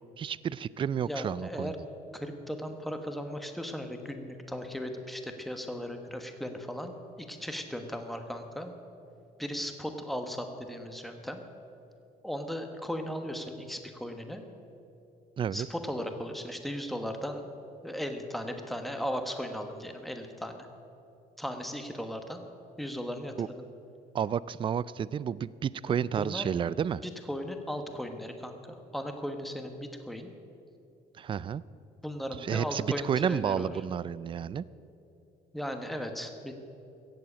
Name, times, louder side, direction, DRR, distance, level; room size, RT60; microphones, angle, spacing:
voice 1, 0.2-1.7 15.4-15.7 23.4-23.5 24.1-27.0 31.2-31.6 32.4-34.6, right 8 dB, 30° right, 20 dB, 0.3 m, -31 dB
voice 2, 1.1-1.7 2.1-8.7 9.4-11.4 12.2-14.4 15.5-17.5 17.8-20.7 21.4-22.4 22.8-23.6 25.9-26.5 27.3-30.3 32.0-33.7 35.5-36.5, equal, ahead, 5 dB, 1.2 m, -37 dB
15.5 x 7.8 x 8.6 m, 2.7 s
cardioid pair, 110°, 17 cm